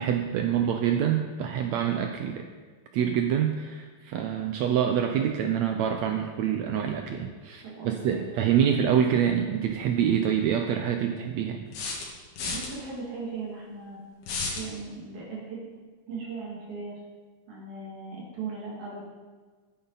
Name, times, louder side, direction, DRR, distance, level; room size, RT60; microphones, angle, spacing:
voice 1, 0.0-2.5 2.9-11.6, right 9 dB, 85° right, 5 dB, 1.5 m, -26 dB
voice 2, 7.6-8.7 12.5-14.0 14.5-15.6 16.1-17.0 17.5-19.0, right 4 dB, 60° right, -5 dB, 3.3 m, -38 dB
sound 1, 9.7-9.8 11.7-12.7 14.2-14.7, left 4 dB, 75° left, 3.2 m, -32 dB
13.5 x 9.6 x 4.0 m, 1.4 s
omnidirectional pair, 3.9 m